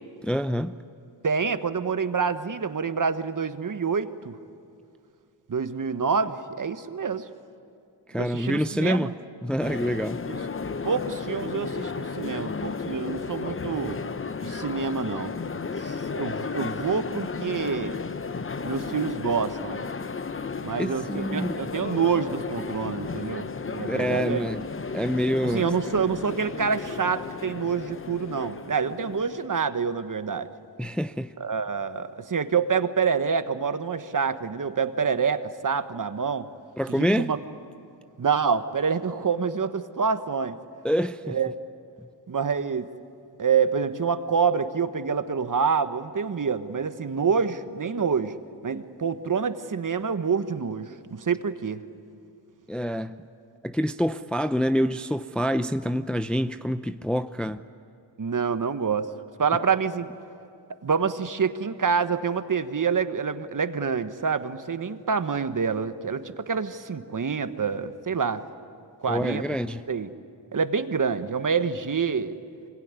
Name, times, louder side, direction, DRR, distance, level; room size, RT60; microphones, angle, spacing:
voice 1, 0.2-0.8 8.1-9.1 9.4-10.3 15.8-16.0 20.8-21.6 23.9-24.6 24.9-25.7 30.8-31.3 36.8-37.3 40.8-41.4 52.7-53.2 53.6-57.6 69.1-69.9, equal, ahead, 0.6 m, -26 dB
voice 2, 1.2-4.4 5.5-7.3 8.2-9.1 10.2-10.4 10.8-14.0 14.4-15.3 15.8-18.0 18.6-19.8 20.6-24.5 25.4-30.5 31.4-36.5 37.0-37.4 38.2-40.6 41.3-41.5 42.3-42.9 43.4-48.3 48.6-51.8 58.2-59.1 59.4-60.1 60.8-68.4 69.0-69.4 69.9-70.1 70.5-72.4, right 6 dB, 45° right, 1.3 m, -27 dB
sound 1, 9.6-29.5, left 4 dB, 30° left, 0.9 m, -34 dB
24.5 x 22.5 x 9.7 m
cardioid pair, 60°, 44 cm